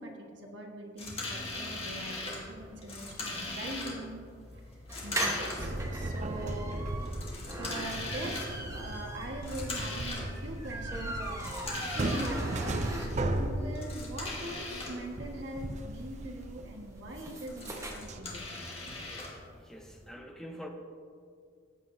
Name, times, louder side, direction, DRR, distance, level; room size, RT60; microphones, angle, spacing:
voice 1, 0.0-4.2 5.0-6.8 7.4-8.4 8.7-11.2 11.9-18.5, right 1 dB, 60° right, 0 dB, 1.5 m, -42 dB
sound 1, 1.0-20.1, left 2 dB, 30° left, 1.9 m, -42 dB
sound 2, 4.9-13.5 13.9-14.0 14.2-14.3 14.5-17.9, right 1 dB, 15° right, 1.2 m, -40 dB
sound 3, 5.6-18.2, right 2 dB, 35° right, 0.5 m, -37 dB
voice 2, 19.5-20.7, equal, 5° left, 2 dB, 0.8 m, -45 dB
14.5 x 9.1 x 2.7 m, 2.2 s
head